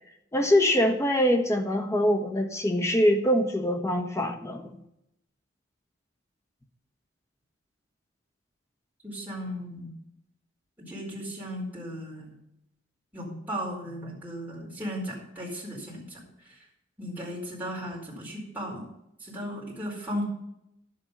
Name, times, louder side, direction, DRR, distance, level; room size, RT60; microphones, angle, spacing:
voice 1, 0.3-4.8, equal, 15° left, 5 dB, 1.2 m, -24 dB
voice 2, 9.0-9.9 10.8-12.4 13.1-16.6 17.0-18.9 19.2-20.2, equal, 10° right, -5 dB, 4.4 m, -36 dB
10.5 x 7.7 x 5.3 m, 0.82 s
head